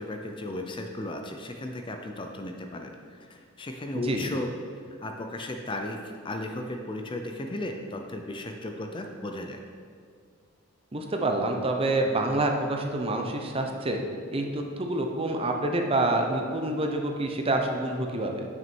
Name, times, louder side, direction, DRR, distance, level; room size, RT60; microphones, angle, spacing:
voice 1, 0.0-4.5 5.0-9.6, left 1 dB, 25° left, 4 dB, 0.5 m, -35 dB
voice 2, 10.9-14.0 14.3-18.5, right 2 dB, 25° right, 3 dB, 0.7 m, -27 dB
9.1 x 6.1 x 4.5 m, 2.2 s
head